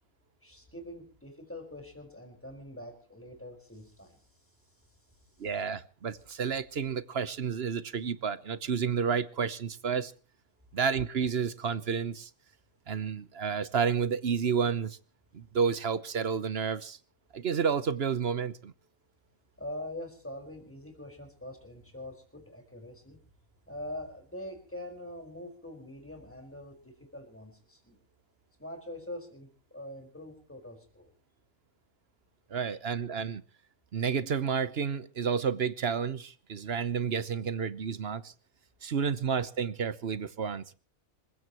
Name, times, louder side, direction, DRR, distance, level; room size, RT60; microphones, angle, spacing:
voice 1, 0.4-4.2 19.6-23.2 23.7-28.0 28.6-31.1, left 1 dB, 10° left, 5.1 m, -44 dB
voice 2, 5.4-10.1 10.7-12.3 12.9-15.0 15.3-17.0 17.3-18.7 32.5-33.4 33.9-38.3 38.8-40.7, right 6 dB, 50° right, 1.1 m, -30 dB
26.5 x 16.0 x 3.1 m
omnidirectional pair, 1.4 m